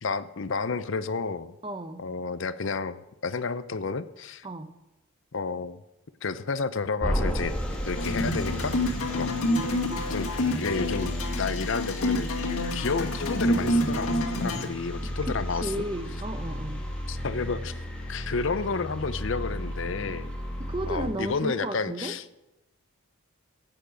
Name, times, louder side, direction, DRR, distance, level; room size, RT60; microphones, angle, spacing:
voice 1, 0.0-1.5 2.0-4.5 5.3-5.8 6.2-9.3 10.1-10.3 10.6-12.3 12.7-15.8 17.1-17.7 18.1-20.3 20.9-22.4, left 4 dB, 60° left, 14 dB, 0.6 m, -31 dB
voice 2, 1.6-2.0 4.4-4.7 15.0-16.9 20.6-22.1, right 1 dB, 25° right, 9 dB, 0.8 m, -34 dB
sound 1, 7.0-21.1, equal, 5° left, 1.9 m, -33 dB
sound 2, 8.0-14.6, left 1 dB, 85° left, 2.0 m, -28 dB
15.0 x 9.1 x 5.1 m, 0.96 s
head